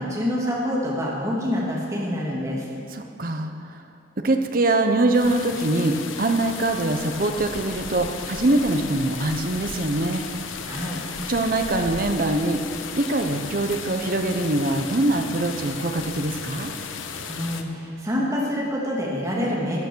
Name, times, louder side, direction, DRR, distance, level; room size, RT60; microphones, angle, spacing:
voice 1, 0.0-2.7 10.7-11.0 17.3-19.8, equal, 15° right, -5 dB, 2.5 m, -26 dB
voice 2, 2.9-3.8 4.2-10.2 11.3-12.6 13.0-16.7, right 2 dB, 45° right, 5 dB, 0.9 m, -23 dB
sound 1, 5.1-17.6, left 5 dB, 85° left, 0.9 m, -35 dB
14.0 x 9.1 x 6.3 m, 2.5 s
head